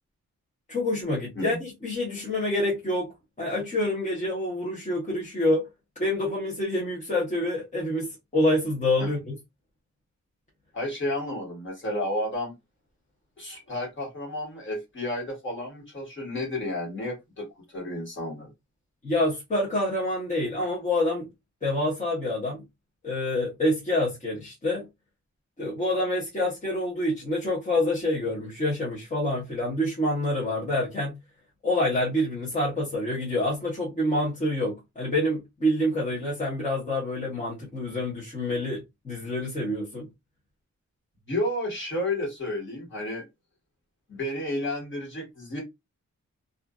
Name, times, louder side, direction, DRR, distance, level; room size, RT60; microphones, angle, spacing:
voice 1, 0.7-3.1 3.4-5.7 6.0-9.3 19.0-21.2 21.6-22.6 23.0-24.9 25.6-31.2 31.6-40.1, left 1 dB, 25° left, 0.9 m, -27 dB
voice 2, 10.7-12.5 13.4-18.5 41.3-43.2 44.1-45.6, left 1 dB, 40° left, 1.5 m, -31 dB
2.5 x 2.5 x 2.3 m
wide cardioid pair, 165°, 30 cm